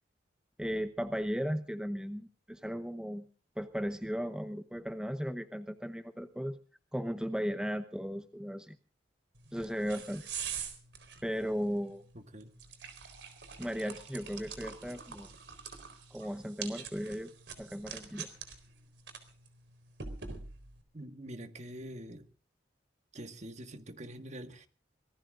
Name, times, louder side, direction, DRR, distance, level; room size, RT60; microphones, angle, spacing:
voice 1, 0.6-3.3 3.6-6.6 6.9-8.8 9.5-10.2 11.2-12.0 13.6-15.3 16.1-17.3 17.6-18.3, equal, 5° right, 0.8 m, -36 dB
sound 1, 9.4-20.8, right 6 dB, 70° right, 4.0 m, -45 dB
voice 2, 12.1-12.5 20.9-22.3 23.1-24.7, right 1 dB, 40° right, 1.7 m, -45 dB
25.5 x 19.0 x 2.5 m
head